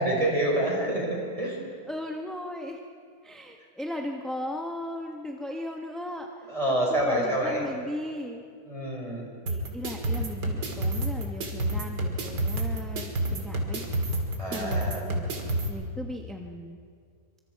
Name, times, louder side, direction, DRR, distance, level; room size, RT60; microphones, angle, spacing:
voice 1, 0.0-1.6 6.5-7.7 8.7-9.2 14.4-15.0, right 1 dB, 20° right, -2 dB, 5.4 m, -27 dB
voice 2, 1.9-2.8 3.2-8.4 9.5-13.8 14.5-15.3 15.7-16.8, left 1 dB, ahead, 2 dB, 0.8 m, -37 dB
sound 1, 9.5-15.7, right 1 dB, 85° right, 2.9 m, -29 dB
25.5 x 24.0 x 4.7 m, 2.2 s
omnidirectional pair, 1.8 m